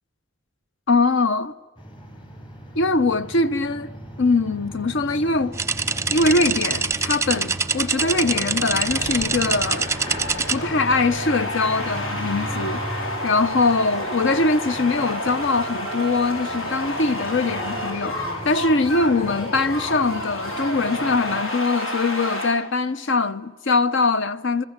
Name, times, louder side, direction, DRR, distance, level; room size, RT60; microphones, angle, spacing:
voice 1, 0.9-1.5 2.7-3.9 4.2-5.6 6.1-9.9 10.5-13.0 13.2-24.6, left 3 dB, 65° left, 1.0 m, -22 dB
sound 1, 1.8-21.4, equal, 25° left, 4.4 m, -36 dB
sound 2, 5.5-10.6, right 4 dB, 15° right, 0.8 m, -25 dB
sound 3, 8.5-22.5, left 1 dB, 80° left, 6.2 m, -31 dB
29.5 x 21.0 x 8.2 m
head